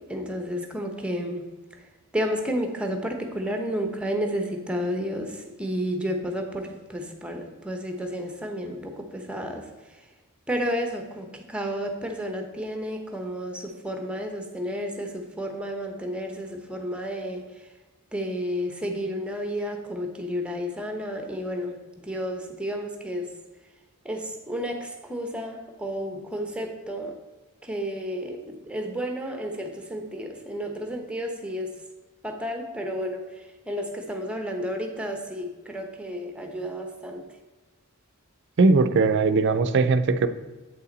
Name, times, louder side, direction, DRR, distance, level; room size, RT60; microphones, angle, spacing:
voice 1, 0.1-1.5 2.1-9.7 10.5-17.4 18.1-23.3 24.0-27.2 27.6-31.8 32.2-33.3 33.7-37.2, equal, 5° right, 4 dB, 0.8 m, -31 dB
voice 2, 38.6-40.3, right 3 dB, 55° right, 10 dB, 0.4 m, -20 dB
7.9 x 5.6 x 4.0 m, 1.3 s
head